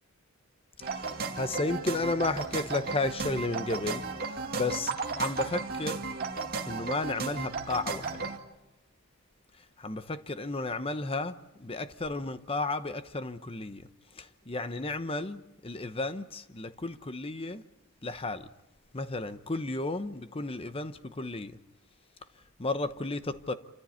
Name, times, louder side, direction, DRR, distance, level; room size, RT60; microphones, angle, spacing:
sound 1, 0.8-8.4, right 4 dB, 45° right, 2.1 m, -34 dB
voice 1, 0.9-4.0 4.5-6.0 6.7-8.2 9.8-13.9 14.2-17.6 18.0-18.5 18.9-21.6 22.6-23.5, left 2 dB, 25° left, 0.9 m, -33 dB
27.5 x 14.5 x 9.6 m
head